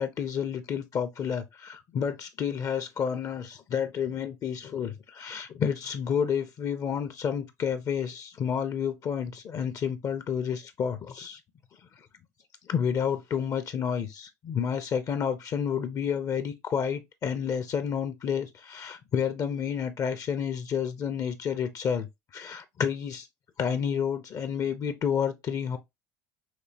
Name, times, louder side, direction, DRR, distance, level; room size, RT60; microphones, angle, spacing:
voice 1, 0.0-11.4 12.7-22.1 22.3-23.3 23.6-25.8, left 7 dB, 40° left, 0.7 m, -30 dB
6.0 x 2.8 x 2.8 m
hypercardioid pair, 70°, 9 cm